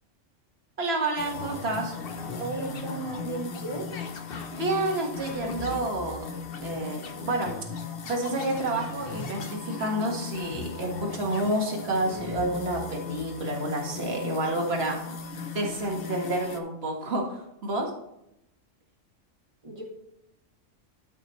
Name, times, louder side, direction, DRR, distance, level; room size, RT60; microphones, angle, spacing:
voice 1, 0.8-1.9 4.5-6.2 6.6-7.5 8.1-15.0 15.5-17.9, right 1 dB, 55° right, 0 dB, 1.9 m, -29 dB
sound 1, 1.2-16.6, left 4 dB, 50° left, 1.0 m, -37 dB
voice 2, 2.4-3.9 19.6-19.8, right 2 dB, 25° right, -2 dB, 2.1 m, -34 dB
13.0 x 5.8 x 3.1 m, 0.82 s
omnidirectional pair, 1.3 m